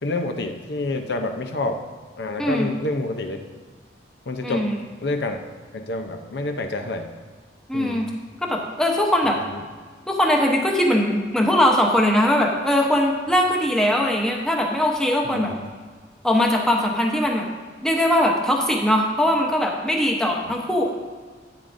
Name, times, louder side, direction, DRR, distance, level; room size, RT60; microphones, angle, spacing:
voice 1, 0.0-1.8 2.2-3.4 4.3-4.7 5.0-5.4 5.7-7.1 7.7-8.0 9.2-9.3 15.2-15.6, left 2 dB, 70° left, 5 dB, 0.7 m, -28 dB
voice 2, 4.4-4.8 7.7-8.1 8.4-9.4 10.1-15.5 16.2-17.5 17.8-20.8, left 1 dB, 5° left, 0 dB, 0.9 m, -21 dB
10.5 x 8.9 x 2.6 m, 1.5 s
head